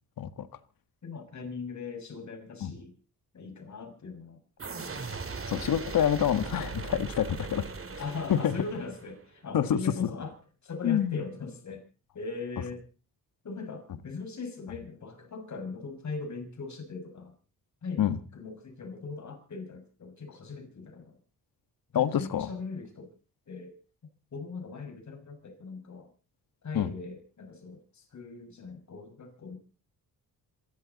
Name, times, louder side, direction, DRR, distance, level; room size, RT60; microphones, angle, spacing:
voice 1, 1.0-2.9 3.3-4.4 5.1-5.2 8.0-10.4 10.6-11.8 12.1-12.8 13.4-17.3 17.8-21.2 21.9-23.1 23.5-23.8 24.3-26.1 26.6-29.6, left 4 dB, 50° left, 5 dB, 6.2 m, -40 dB
sound 1, 4.6-9.3, right 4 dB, 35° right, 3.1 m, -39 dB
voice 2, 5.5-7.6 8.3-8.5 9.5-10.1 10.8-11.2 18.0-18.2 21.9-22.5 26.7-26.9, left 9 dB, 65° left, 12 dB, 1.7 m, -27 dB
27.0 x 12.5 x 4.1 m, 0.37 s
cardioid pair, 80°, 37 cm